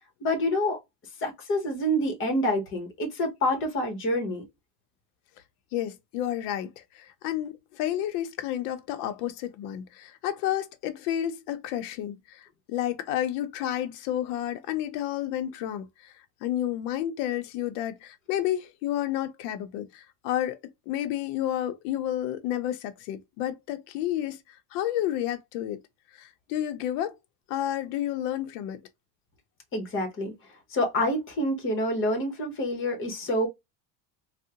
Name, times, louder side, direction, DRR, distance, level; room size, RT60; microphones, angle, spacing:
voice 1, 0.2-0.8 1.2-4.4 29.7-30.3 30.7-33.5, left 1 dB, 30° left, 0.9 m, -27 dB
voice 2, 5.7-16.1 16.4-20.6 20.9-24.4 24.7-25.8 26.1-27.1 27.5-28.8, left 12 dB, 85° left, 0.6 m, -31 dB
3.5 x 2.1 x 2.8 m
cardioid pair, 170°, 43 cm